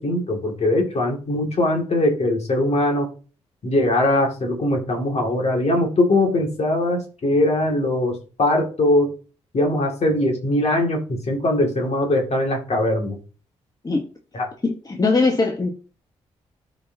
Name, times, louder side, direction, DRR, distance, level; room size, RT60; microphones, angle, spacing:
voice 1, 0.0-3.1 3.6-9.1 9.5-13.2 14.3-14.5, left 1 dB, 55° left, 1 dB, 2.2 m, -21 dB
voice 2, 14.6-15.7, left 3 dB, 30° left, 1 dB, 1.3 m, -20 dB
12.5 x 4.2 x 2.7 m, 0.37 s
supercardioid pair, 50°, 13 cm